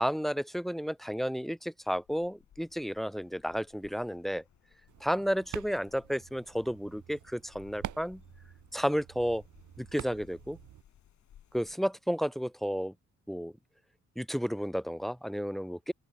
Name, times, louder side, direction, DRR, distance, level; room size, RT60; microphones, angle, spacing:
voice 1, 0.0-4.4 5.0-8.2 8.7-9.4 9.8-10.6 11.5-12.9 13.3-13.5 14.2-15.9, equal, ahead, 1.0 m, -32 dB
sound 1, 1.8-11.8, left 10 dB, 70° left, 6.5 m, -61 dB
sound 2, 4.9-10.8, right 12 dB, 75° right, 2.8 m, -47 dB
open air
cardioid pair, 90°, 30 cm